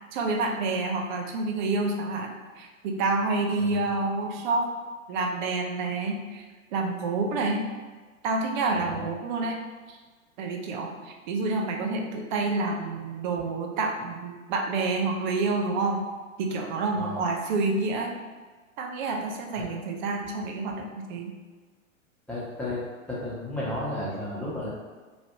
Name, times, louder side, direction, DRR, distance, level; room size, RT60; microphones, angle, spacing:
voice 1, 0.1-4.7 5.1-6.4 6.7-7.7 8.2-9.6 9.9-10.0 10.4-16.0 16.4-18.1 18.8-21.3, right 3 dB, 35° right, 1 dB, 0.4 m, -28 dB
voice 2, 8.7-9.1 16.9-17.2 19.6-19.7 22.3-22.8 23.1-24.7, left 1 dB, 5° left, -10 dB, 1.0 m, -33 dB
3.0 x 2.6 x 2.7 m, 1.4 s
hypercardioid pair, 105°, 41 cm